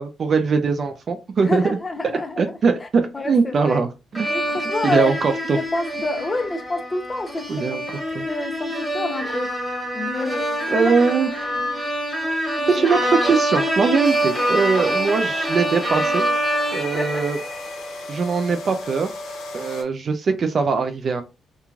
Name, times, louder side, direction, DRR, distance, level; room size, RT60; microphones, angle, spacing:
voice 1, 0.0-1.8 2.4-4.3 4.8-5.6 7.5-7.8 8.1-8.2 10.7-11.3 12.7-16.2 16.7-17.4 18.1-19.1 19.5-21.2, right 5 dB, 50° right, 0.3 m, -21 dB
voice 2, 1.4-2.9 3.1-3.8 4.3-7.8 8.3-9.6 9.9-10.9 11.6-11.8 12.6-12.9 16.9-17.2, left 2 dB, 25° left, 0.5 m, -28 dB
sound 1, 4.2-17.8, right 1 dB, 5° left, 1.1 m, -25 dB
sound 2, 14.0-19.8, left 2 dB, 75° left, 0.7 m, -36 dB
3.0 x 2.2 x 2.4 m
cardioid pair, 90°, 0 cm